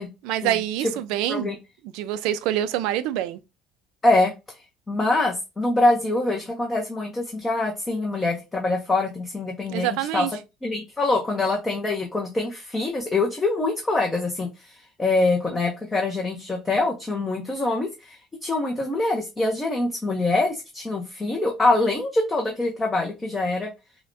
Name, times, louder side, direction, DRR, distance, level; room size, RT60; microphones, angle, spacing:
voice 1, 0.2-1.5 1.9-3.4 9.7-10.3, right 12 dB, 90° right, 0.4 m, -26 dB
voice 2, 4.9-10.3 10.6-23.7, left 2 dB, 15° left, 0.7 m, -24 dB
5.6 x 2.2 x 2.6 m
cardioid pair, 145°, 0 cm